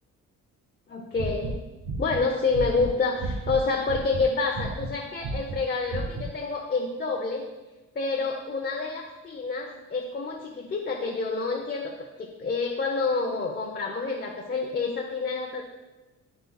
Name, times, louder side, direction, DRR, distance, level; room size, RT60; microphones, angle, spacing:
voice 1, 0.9-1.6 2.0-7.4 7.9-15.6, left 4 dB, 35° left, -1 dB, 0.8 m, -28 dB
sound 1, 1.1-3.6 3.9-4.3 4.5-4.9 5.2-5.6 5.9-6.3, right 2 dB, 70° right, 1.1 m, -32 dB
11.5 x 4.0 x 2.3 m, 1.1 s
cardioid pair, 90°, 30 cm